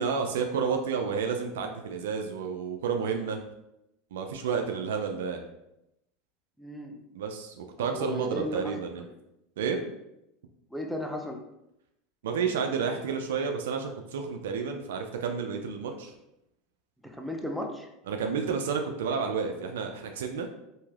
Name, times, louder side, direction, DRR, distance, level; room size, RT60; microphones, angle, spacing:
voice 1, 0.0-3.4 4.1-5.4 7.1-9.0 9.6-9.8 12.2-16.2 18.1-20.5, right 6 dB, 80° right, 4 dB, 0.3 m, -30 dB
voice 2, 6.6-7.0 7.8-8.7 10.7-11.4 17.0-17.9, equal, ahead, 2 dB, 0.5 m, -35 dB
3.0 x 2.7 x 2.4 m, 0.86 s
hypercardioid pair, 95°, 0 cm